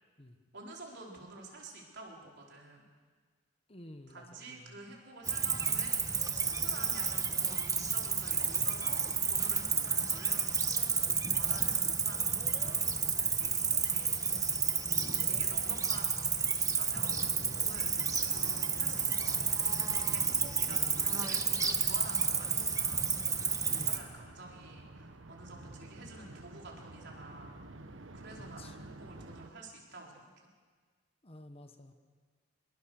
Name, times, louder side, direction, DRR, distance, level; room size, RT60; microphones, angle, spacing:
voice 1, 0.5-2.9 4.1-9.0 9.3-10.4 11.3-14.7 15.2-18.0 18.7-19.6 20.1-27.5 28.1-30.3, right 2 dB, 60° right, -1 dB, 4.7 m, -50 dB
voice 2, 3.7-4.7 9.7-10.0 11.3-11.4 14.9-15.4 17.9-18.3 18.8-19.1 20.7-21.5 23.7-24.1 25.5-25.7 28.4-28.7 31.2-31.9, left 1 dB, 30° left, 7 dB, 1.4 m, -51 dB
Cricket, 5.3-24.0, right 5 dB, 20° right, 1.3 m, -31 dB
sound 1, 17.1-29.5, right 2 dB, 85° right, 1.3 m, -50 dB
25.5 x 22.0 x 6.7 m, 1.5 s
head